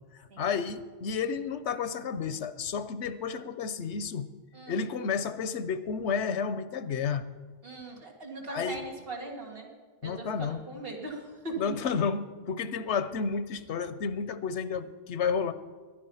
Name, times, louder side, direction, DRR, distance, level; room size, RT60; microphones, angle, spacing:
voice 1, 0.4-4.3 4.7-7.3 8.5-8.8 10.0-10.6 11.6-15.5, left 6 dB, 80° left, 13 dB, 1.1 m, -31 dB
voice 2, 7.6-9.7 10.0-11.7, right 2 dB, 55° right, 0 dB, 2.8 m, -40 dB
21.5 x 10.0 x 5.7 m, 1.4 s
omnidirectional pair, 1.1 m